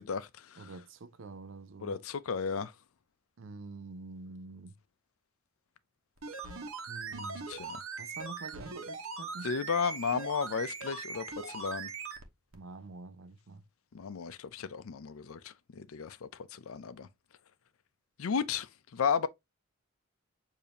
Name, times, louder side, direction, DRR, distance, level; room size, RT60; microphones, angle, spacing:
voice 1, 0.0-0.7 1.8-2.7 7.5-7.8 9.4-11.9 13.9-17.1 18.2-19.3, left 6 dB, 80° left, 0.5 m, -34 dB
voice 2, 0.6-2.0 3.4-4.8 6.9-7.5 8.0-9.5 12.5-13.6, right 3 dB, 60° right, 0.5 m, -46 dB
sound 1, 6.2-12.3 12.5-12.6, right 4 dB, 75° right, 1.0 m, -41 dB
6.7 x 2.8 x 2.7 m
head